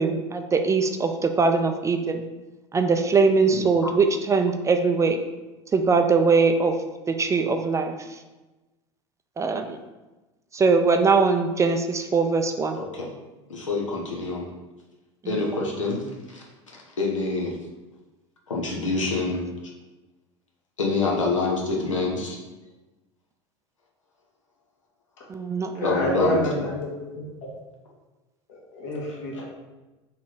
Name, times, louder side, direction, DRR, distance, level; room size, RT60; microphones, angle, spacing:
voice 1, 0.0-2.2 2.7-5.2 5.7-6.8 7.1-8.0 9.4-9.8 10.5-12.8 25.3-25.9, right 4 dB, 20° right, 6 dB, 0.3 m, -21 dB
voice 2, 3.5-3.9 12.8-13.1 13.5-14.5 15.2-16.4 16.7-17.6 18.5-19.5 20.8-22.4 25.8-26.6 29.4-29.5, left 3 dB, 85° left, -2 dB, 0.8 m, -27 dB
voice 3, 25.7-26.9 27.1-27.2 28.5-29.4, equal, 65° left, -3 dB, 1.5 m, -27 dB
3.9 x 3.1 x 3.8 m, 1.1 s
hypercardioid pair, 80°, 16 cm